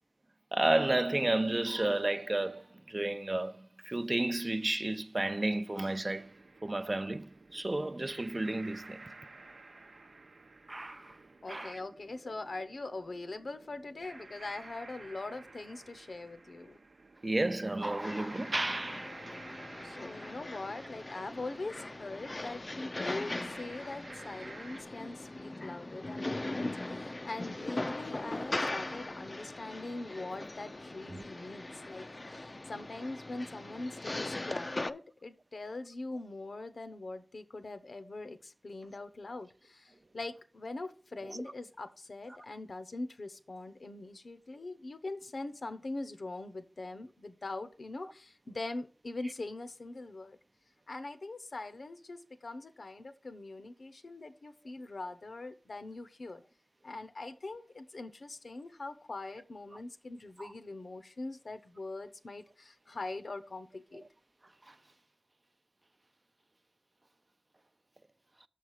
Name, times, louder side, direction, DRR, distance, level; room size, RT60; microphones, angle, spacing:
voice 1, 0.5-6.4 6.6-9.0 10.7-11.2 11.5-11.8 17.2-19.1 31.1-31.3 41.3-41.4 60.4-60.5 64.7-64.8, right 2 dB, 40° right, 0.5 m, -32 dB
sound 1, 6.0-24.8, right 3 dB, 85° right, 0.7 m, -53 dB
voice 2, 11.4-16.8 19.8-50.4 50.9-56.4 56.8-64.1, left 2 dB, 80° left, 0.8 m, -42 dB
sound 2, 18.0-34.9, left 2 dB, 40° left, 0.4 m, -40 dB
6.5 x 4.7 x 6.4 m
wide cardioid pair, 60°, 0 cm